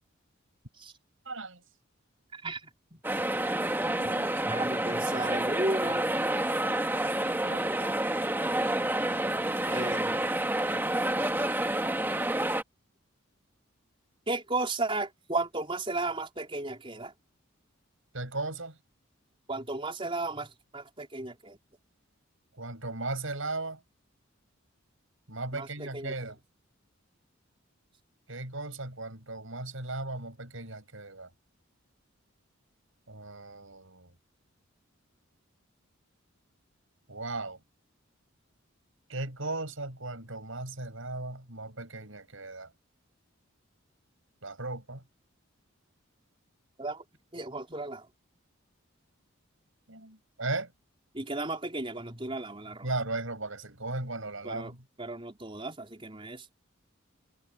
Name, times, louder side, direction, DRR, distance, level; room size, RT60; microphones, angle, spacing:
voice 1, 1.3-1.6 3.9-4.3 7.4-7.7 18.1-18.8 22.6-23.8 25.3-26.4 28.3-31.3 33.1-34.1 37.1-37.6 39.1-42.7 44.4-45.0 49.9-50.7 52.8-54.8, right 2 dB, 70° right, 7.0 m, -37 dB
sound 1, 3.0-12.6, right 1 dB, 10° right, 2.1 m, -29 dB
voice 2, 4.5-6.1 9.7-10.2 14.3-17.1 19.5-21.6 25.5-26.1 46.8-47.0 47.3-48.1 51.1-52.9 54.4-54.7 55.0-56.4, right 2 dB, 25° right, 4.6 m, -34 dB
head